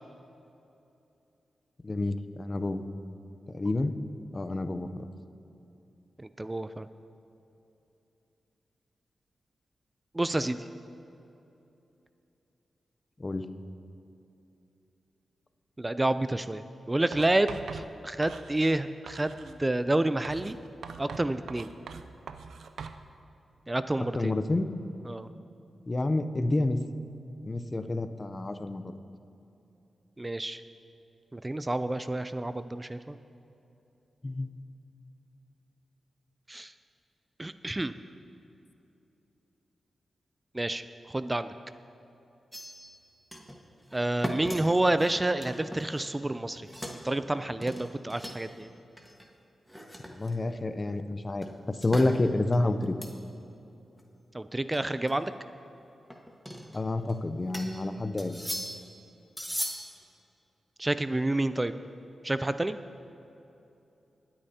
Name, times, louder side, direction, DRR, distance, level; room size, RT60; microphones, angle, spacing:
voice 1, 1.8-2.8 3.5-4.0 4.3-5.0 13.2-13.5 24.1-24.7 25.9-26.8 27.4-28.9 34.2-34.5 50.1-52.9 56.7-58.4, left 2 dB, 35° left, 10 dB, 0.6 m, -29 dB
voice 2, 6.2-6.9 10.1-10.7 15.8-20.6 21.0-21.7 23.7-24.4 25.1-25.3 30.2-30.6 31.3-33.2 36.5-36.7 37.4-38.0 40.5-41.5 43.9-46.7 47.0-48.7 54.3-55.3 60.8-61.7 62.2-62.8, right 1 dB, 20° right, 12 dB, 0.4 m, -29 dB
Writing, 17.1-18.8 19.1-19.6 20.2-23.0, right 6 dB, 80° right, 0.4 m, -43 dB
sound 1, 42.5-43.0 43.3-43.6 43.9-46.3 46.5-47.0 47.6-48.6 49.0-49.2 49.7-50.6 51.4-52.1 52.5-53.2 53.5-53.6 54.0-54.1 54.7-55.1 56.1-57.1 57.5-57.8 58.2-58.9 59.4-60.0, equal, ahead, 1.5 m, -39 dB
22.5 x 8.7 x 2.8 m, 2.9 s
cardioid pair, 55°, 0 cm